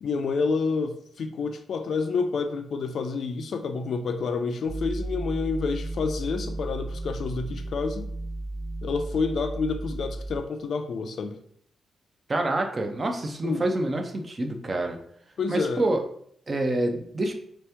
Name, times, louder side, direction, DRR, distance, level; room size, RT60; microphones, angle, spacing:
voice 1, 0.0-8.1 8.8-11.4 13.4-13.7 15.4-15.8, left 4 dB, 55° left, 8 dB, 0.3 m, -29 dB
sound 1, 4.6-10.4, right 2 dB, 80° right, 0.8 m, -34 dB
voice 2, 12.3-15.0 15.5-16.0 16.5-17.3, right 1 dB, 25° right, 4 dB, 0.4 m, -27 dB
3.3 x 2.9 x 3.4 m, 0.65 s
wide cardioid pair, 155°, 0 cm